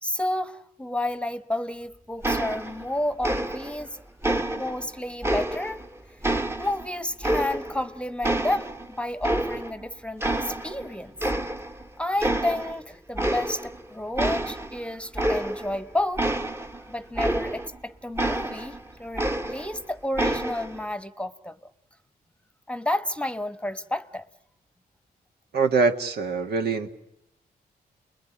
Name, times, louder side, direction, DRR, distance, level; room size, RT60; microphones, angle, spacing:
voice 1, 0.0-4.0 4.6-5.8 6.6-11.1 12.0-16.3 16.9-21.7 22.7-24.3, left 1 dB, 5° left, 1.1 m, -31 dB
sound 1, 2.2-2.9 3.2-3.9 4.2-5.9 6.2-7.9 8.2-9.8 10.2-10.9 11.2-11.8 12.2-12.8 13.1-13.8 14.2-17.8 18.2-19.8 20.2-20.8, right 1 dB, 15° right, 1.2 m, -28 dB
voice 2, 25.5-26.9, right 4 dB, 80° right, 2.2 m, -23 dB
29.5 x 21.5 x 9.1 m
cardioid pair, 90°, 16 cm